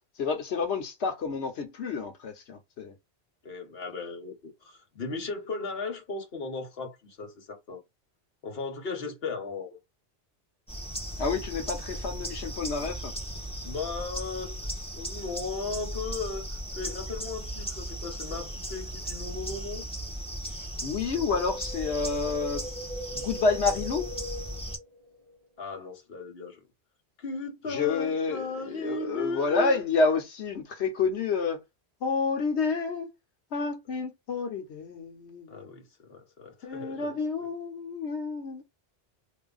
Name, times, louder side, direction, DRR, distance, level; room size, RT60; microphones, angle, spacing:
voice 1, 0.2-2.9 11.2-13.1 20.4-22.7 23.1-24.1 27.7-31.6 32.0-33.1 33.5-35.7 36.6-38.6, left 4 dB, 90° left, 1.2 m, -29 dB
voice 2, 3.4-7.8 8.4-9.8 13.6-19.9 25.6-26.6 27.2-29.9 35.5-37.2, left 3 dB, 65° left, 1.4 m, -36 dB
sound 1, 10.7-24.8, right 1 dB, 5° left, 1.7 m, -37 dB
Wind, 21.1-25.4 25.7-25.8, equal, 40° right, 0.6 m, -41 dB
3.4 x 2.8 x 3.9 m
omnidirectional pair, 1.1 m